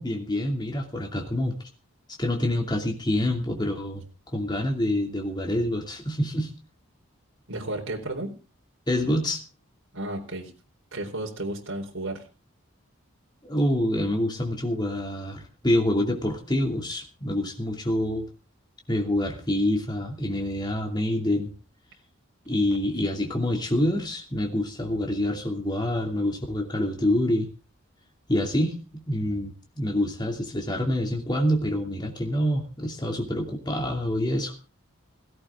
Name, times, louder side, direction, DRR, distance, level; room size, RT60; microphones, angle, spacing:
voice 1, 0.0-1.6 2.2-4.0 4.3-6.5 8.9-9.4 13.4-18.3 18.9-21.5 22.5-27.5 28.3-34.5, left 1 dB, 20° left, 2 dB, 2.6 m, -26 dB
voice 2, 7.5-8.3 9.9-10.5 10.9-12.2 22.7-22.8, right 1 dB, 70° right, 0 dB, 4.1 m, -33 dB
17.0 x 16.5 x 3.7 m, 0.34 s
head